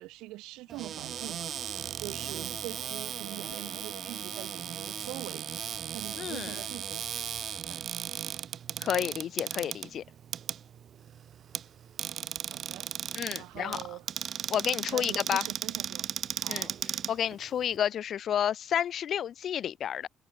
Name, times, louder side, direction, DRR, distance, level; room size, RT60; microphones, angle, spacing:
voice 1, 0.0-5.5 5.9-7.0 7.7-7.8 12.5-12.9 13.3-14.1 14.9-16.1 16.3-16.8, right 19 dB, 70° right, 1.7 m, -43 dB
Cupboard open or close, 0.7-17.8, right 9 dB, 55° right, 1.4 m, -37 dB
voice 2, 6.1-6.6 8.8-10.0 13.1-13.8 14.5-15.5 16.5-16.7 17.1-20.1, left 9 dB, 55° left, 0.9 m, -31 dB
hypercardioid pair, 55°, 0 cm